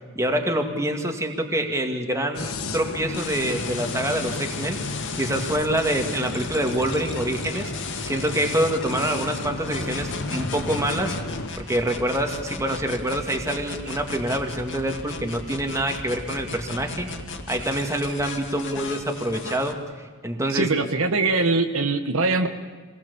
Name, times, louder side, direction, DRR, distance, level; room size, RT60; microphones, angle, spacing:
voice 1, 0.2-4.8 5.2-7.7 8.0-11.2 11.6-17.1 17.5-19.8 20.2-20.7, right 1 dB, 15° right, 4 dB, 2.1 m, -26 dB
sound 1, 2.3-11.5, left 2 dB, 80° left, 1.4 m, -33 dB
sound 2, 3.1-19.7, left 5 dB, 60° left, 2.2 m, -36 dB
voice 2, 20.5-22.5, right 3 dB, 70° right, 6 dB, 1.4 m, -22 dB
25.5 x 20.0 x 7.1 m, 1.5 s
head